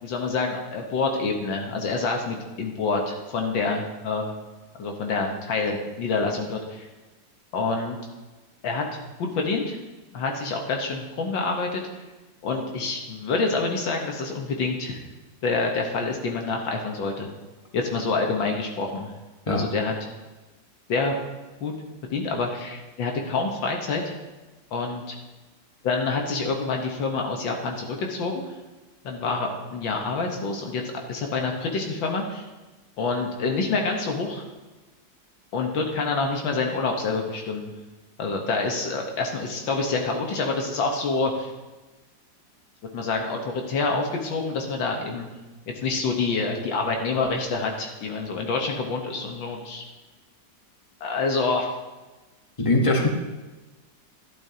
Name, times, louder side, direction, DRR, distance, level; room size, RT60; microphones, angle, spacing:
voice 1, 0.0-4.3 4.8-6.9 7.5-8.0 8.6-9.8 10.1-11.8 12.4-15.0 15.4-17.3 17.7-19.1 19.5-19.9 20.9-21.2 21.6-21.7 22.1-24.1 24.7-25.2 25.8-28.5 29.0-30.8 31.1-32.4 33.0-34.4 35.5-37.7 38.2-41.5 42.9-45.3 45.8-49.8 51.0-51.7, left 3 dB, 85° left, 2 dB, 2.0 m, -27 dB
voice 2, 52.6-53.1, left 2 dB, 20° left, 1 dB, 1.1 m, -21 dB
12.0 x 11.0 x 2.9 m, 1.2 s
omnidirectional pair, 2.0 m